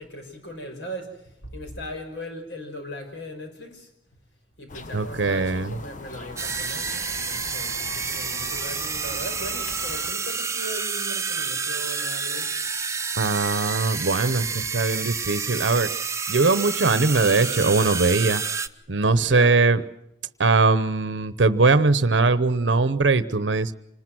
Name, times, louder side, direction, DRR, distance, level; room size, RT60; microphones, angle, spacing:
voice 1, 0.0-3.9 4.6-12.5 19.2-19.6, equal, 75° left, 5 dB, 5.8 m, -38 dB
sound 1, 4.7-10.1, left 2 dB, 45° left, 1.2 m, -41 dB
voice 2, 4.9-5.8 13.2-15.9 16.3-18.4 18.9-19.8 20.4-23.7, right 3 dB, 80° right, 14 dB, 0.9 m, -21 dB
sound 2, 6.4-18.7, right 5 dB, 15° right, 0.8 m, -29 dB
26.5 x 20.0 x 6.1 m, 0.80 s
head